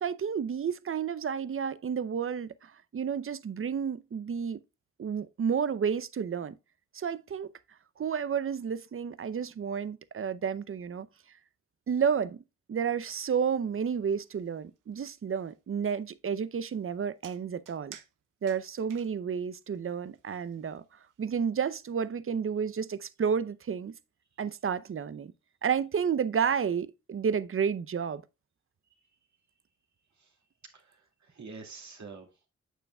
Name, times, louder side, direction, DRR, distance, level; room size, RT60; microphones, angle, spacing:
voice 1, 0.0-4.6 5.0-6.6 6.9-7.5 8.0-11.1 11.9-12.4 12.7-18.0 18.4-20.8 21.2-23.9 24.4-25.3 25.6-28.2, right 7 dB, 45° right, 0.6 m, -31 dB
sound 1, 12.9-21.6, right 10 dB, 80° right, 0.7 m, -57 dB
voice 2, 30.1-32.5, right 4 dB, 60° right, 2.3 m, -49 dB
9.0 x 6.9 x 2.3 m
supercardioid pair, 45°, 31 cm